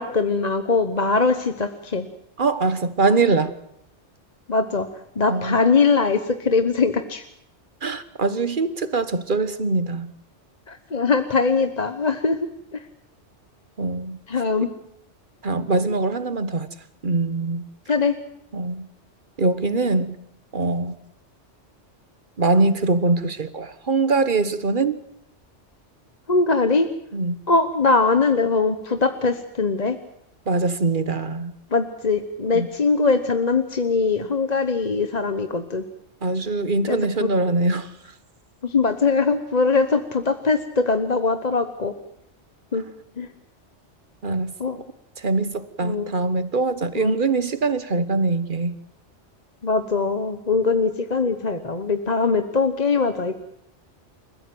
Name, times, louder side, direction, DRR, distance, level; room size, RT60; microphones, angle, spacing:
voice 1, 0.0-2.1 4.5-4.9 5.2-7.2 10.7-12.4 12.7-12.8 14.3-14.7 17.9-18.2 26.3-26.9 27.5-30.0 31.7-35.8 36.9-37.3 38.6-41.9 42.7-42.8 43.2-43.3 44.6-44.8 45.8-46.1 46.9-47.1 49.6-53.3, left 4 dB, 35° left, 1.2 m, -21 dB
voice 2, 2.4-3.5 5.3-5.6 7.8-10.1 13.8-14.2 15.4-16.7 17.0-17.7 18.5-18.9 19.4-20.2 20.5-21.0 22.4-25.0 27.1-27.4 30.5-31.5 32.5-32.7 36.2-37.9 44.2-44.8 45.2-48.8, right 3 dB, 45° right, 1.4 m, -23 dB
29.0 x 15.0 x 7.9 m
omnidirectional pair, 1.2 m